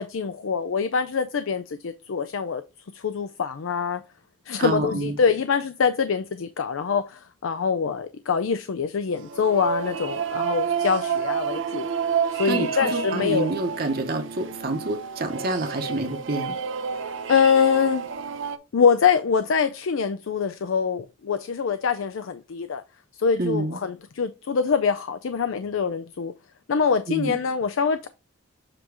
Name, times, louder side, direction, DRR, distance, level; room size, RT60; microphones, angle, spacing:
voice 1, 0.0-2.6 2.9-4.0 4.5-11.9 12.3-13.5 17.3-18.1 18.7-22.8 23.2-26.3 26.7-28.1, left 6 dB, 75° left, 0.5 m, -24 dB
voice 2, 4.6-5.2 12.2-16.6 23.4-23.8 27.1-27.3, right 2 dB, 50° right, 1.0 m, -28 dB
sound 1, 9.2-18.6, right 6 dB, 70° right, 0.6 m, -29 dB
7.6 x 3.0 x 4.7 m
head